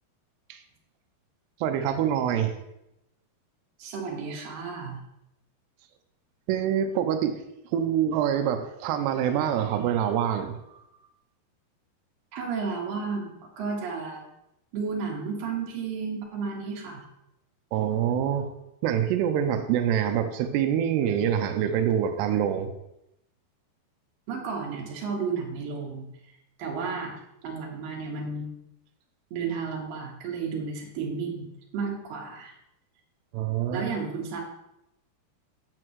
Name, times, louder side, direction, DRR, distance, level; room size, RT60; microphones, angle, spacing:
voice 1, 1.6-2.6 6.5-7.4 7.7-10.8 17.7-18.5 18.8-22.7 33.3-33.9, right 9 dB, 90° right, 7 dB, 2.8 m, -25 dB
voice 2, 3.8-5.0 12.3-14.2 14.7-17.0 24.3-26.1 26.6-28.5 29.3-32.6 33.7-34.4, right 5 dB, 65° right, -1 dB, 3.0 m, -33 dB
9.6 x 7.7 x 3.1 m, 0.85 s
omnidirectional pair, 4.7 m